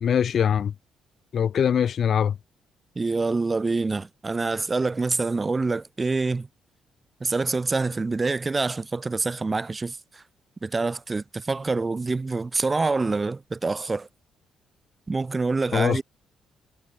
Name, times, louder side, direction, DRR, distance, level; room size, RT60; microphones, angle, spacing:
voice 1, 0.0-0.7 1.3-2.4 15.7-16.0, left 8 dB, 55° left, 0.6 m, -22 dB
voice 2, 3.0-6.5 7.2-10.2 10.6-14.1 15.1-16.0, right 3 dB, 25° right, 4.3 m, -26 dB
cardioid pair, 90°, 0 cm